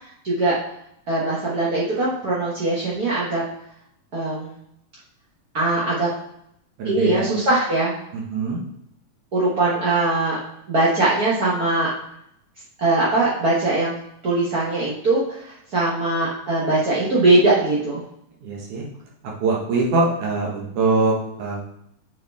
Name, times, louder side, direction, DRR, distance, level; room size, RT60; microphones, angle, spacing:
voice 1, 0.2-0.6 1.1-3.4 4.1-4.5 5.5-6.1 6.8-7.9 9.3-10.4 10.7-11.9 12.8-14.0 14.2-18.0, right 2 dB, 55° right, -7 dB, 1.1 m, -21 dB
voice 2, 6.8-7.2 8.3-8.6 18.4-18.8 19.4-21.6, right 3 dB, 75° right, -2 dB, 2.6 m, -22 dB
6.8 x 6.6 x 3.5 m, 0.75 s
omnidirectional pair, 3.6 m